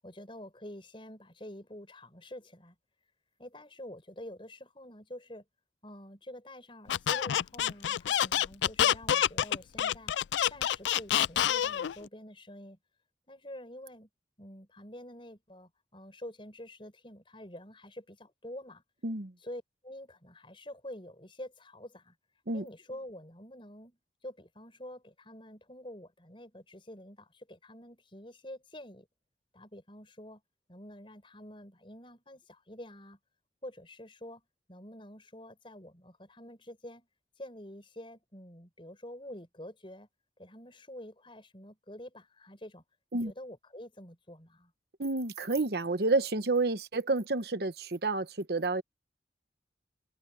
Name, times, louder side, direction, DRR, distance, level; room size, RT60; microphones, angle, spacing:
voice 1, 0.0-2.7 3.4-5.4 5.8-10.1 10.5-12.8 13.3-14.1 14.4-18.8 19.4-22.1 22.5-29.1 29.5-30.4 30.7-33.2 33.6-34.4 34.7-37.1 37.4-40.1 40.4-42.8 43.2-44.7, left 1 dB, 30° left, 6.5 m, -47 dB
Squeak, 6.9-11.9, left 10 dB, 80° left, 0.3 m, -27 dB
voice 2, 19.0-19.3 22.5-22.7 43.1-43.3 45.0-48.8, right 3 dB, 60° right, 1.0 m, -30 dB
head